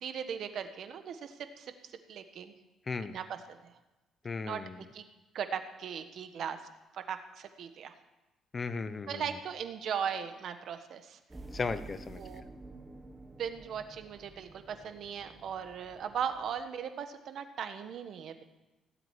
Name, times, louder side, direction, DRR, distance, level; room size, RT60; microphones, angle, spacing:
voice 1, 0.0-1.7 2.1-2.5 3.0-3.6 4.4-4.6 4.9-5.0 5.3-6.6 6.9-7.9 9.1-11.2 12.2-12.4 13.4-18.4, right 8 dB, 60° right, 9 dB, 1.4 m, -38 dB
voice 2, 2.9-3.2 4.2-4.8 8.5-9.2 11.5-12.2, left 4 dB, 30° left, 12 dB, 0.9 m, -36 dB
sound 1, 11.3-16.6, right 2 dB, 15° right, 1.5 m, -50 dB
18.0 x 7.9 x 9.6 m, 1.0 s
cardioid pair, 125°, 0 cm